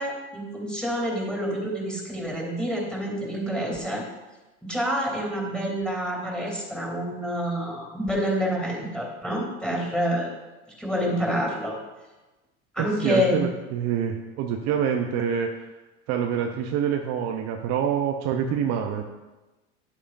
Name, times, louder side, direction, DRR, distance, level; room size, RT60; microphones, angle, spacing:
voice 1, 0.0-4.0 4.6-10.3 10.8-11.8 12.7-13.4, equal, ahead, -2 dB, 3.0 m, -27 dB
voice 2, 12.8-15.7 16.1-19.0, right 8 dB, 45° right, 3 dB, 0.8 m, -26 dB
9.5 x 8.7 x 2.6 m, 1.1 s
hypercardioid pair, 105°, 36 cm